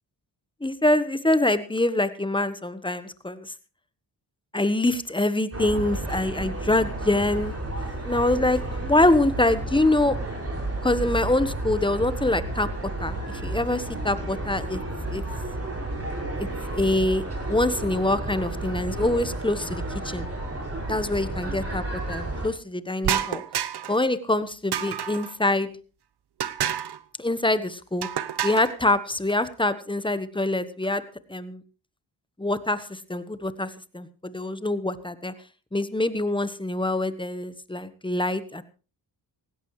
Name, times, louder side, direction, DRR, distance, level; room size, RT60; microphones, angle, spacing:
voice 1, 0.6-3.5 4.5-7.5 8.0-10.2 10.8-12.7 13.0-14.8 15.1-15.2 16.4-16.5 16.7-20.3 20.9-23.4 23.9-25.7 27.2-28.1 28.4-31.0 31.3-31.6 32.4-35.3 35.7-38.6, left 2 dB, 10° left, 13 dB, 1.2 m, -25 dB
sound 1, 5.5-22.5, right 2 dB, 35° right, 6.0 m, -32 dB
sound 2, 23.0-24.0 24.7-25.3 26.4-27.0 28.0-28.7, right 9 dB, 65° right, 0.9 m, -28 dB
18.0 x 16.0 x 3.2 m, 0.35 s
cardioid pair, 75°, 42 cm